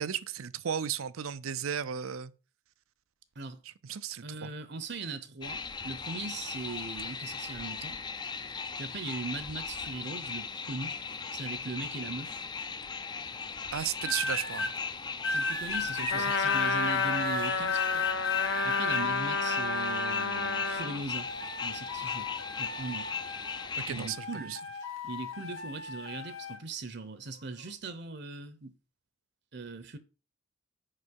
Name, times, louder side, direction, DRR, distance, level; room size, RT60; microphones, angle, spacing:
voice 1, 0.0-2.3 3.8-4.5 13.7-14.7 16.0-16.4 23.8-24.6, right 8 dB, 80° right, 0.5 m, -35 dB
voice 2, 4.2-8.0 8.8-11.0 11.3-12.4 14.0-14.1 15.3-18.1 18.6-21.3 21.6-22.3 22.6-23.1 23.9-24.6 25.0-28.7 29.5-30.0, right 3 dB, 55° right, 0.8 m, -40 dB
sound 1, 5.4-24.1, left 5 dB, 20° left, 0.4 m, -38 dB
sound 2, 14.0-14.7 15.2-20.8 21.1-23.8 24.1-26.6 27.4-27.7, left 5 dB, 80° left, 1.6 m, -36 dB
Trumpet, 16.1-21.0, left 3 dB, 65° left, 0.9 m, -30 dB
6.7 x 5.3 x 5.3 m
head